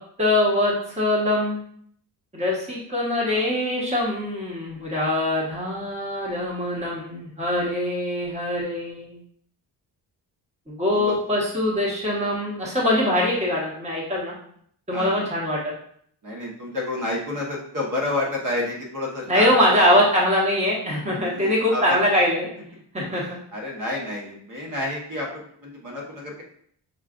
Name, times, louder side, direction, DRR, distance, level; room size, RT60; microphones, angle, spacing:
voice 1, 0.2-1.6 2.3-9.2 10.7-14.3 14.9-15.8 19.3-22.5 22.9-23.4, left 1 dB, 15° right, -4 dB, 1.1 m, -23 dB
voice 2, 14.9-15.3 16.2-19.5 19.9-20.0 21.2-22.0 23.1-25.3 25.6-26.4, left 2 dB, 45° right, -3 dB, 1.3 m, -30 dB
6.3 x 2.4 x 2.5 m, 0.64 s
cardioid pair, 110°, 43 cm